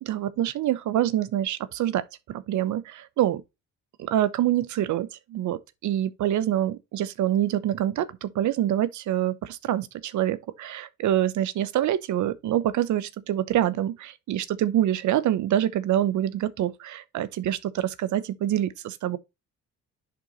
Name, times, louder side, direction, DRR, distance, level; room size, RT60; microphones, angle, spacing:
voice 1, 0.0-2.0 2.3-3.4 4.0-19.2, right 12 dB, 75° right, 0.9 m, -26 dB
10.5 x 3.8 x 3.1 m
cardioid pair, 90°, 30 cm